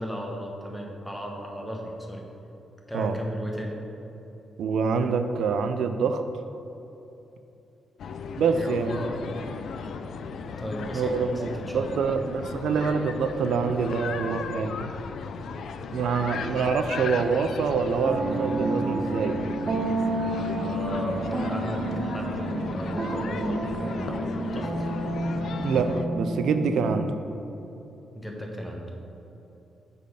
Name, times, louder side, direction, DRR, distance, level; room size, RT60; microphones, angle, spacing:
voice 1, 0.0-2.2 2.9-3.8 8.5-9.1 10.6-12.0 20.6-24.9 28.1-28.9, equal, 5° left, 0 dB, 0.9 m, -35 dB
voice 2, 4.6-6.2 8.4-9.0 10.9-14.9 15.9-19.4 25.6-27.1, right 5 dB, 80° right, 8 dB, 0.4 m, -26 dB
sound 1, 8.0-26.1, left 5 dB, 65° left, 0.4 m, -36 dB
sound 2, 18.0-27.1, right 2 dB, 30° right, 0.6 m, -30 dB
8.2 x 4.2 x 5.5 m, 2.9 s
wide cardioid pair, 155°, 0 cm